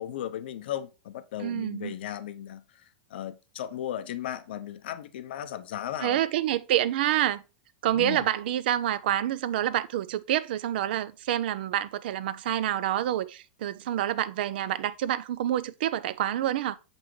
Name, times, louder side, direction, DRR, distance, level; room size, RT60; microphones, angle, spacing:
voice 1, 0.0-6.2 7.9-8.3, left 11 dB, 75° left, 0.7 m, -36 dB
voice 2, 1.4-1.9 6.0-7.4 7.8-16.8, right 12 dB, 70° right, 0.5 m, -27 dB
7.1 x 5.3 x 3.2 m
supercardioid pair, 140°, 6 cm